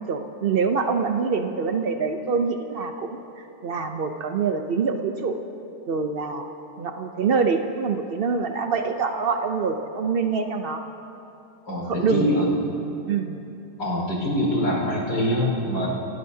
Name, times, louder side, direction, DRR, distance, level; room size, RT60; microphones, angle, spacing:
voice 1, 0.1-3.2 3.6-5.4 5.9-6.4 6.8-10.8 11.9-12.4 13.1-13.4, right 5 dB, 90° right, 6 dB, 0.5 m, -25 dB
voice 2, 11.6-12.5 13.8-15.9, left 1 dB, 85° left, -3 dB, 5.1 m, -24 dB
29.0 x 16.0 x 2.8 m, 2.8 s
omnidirectional pair, 1.9 m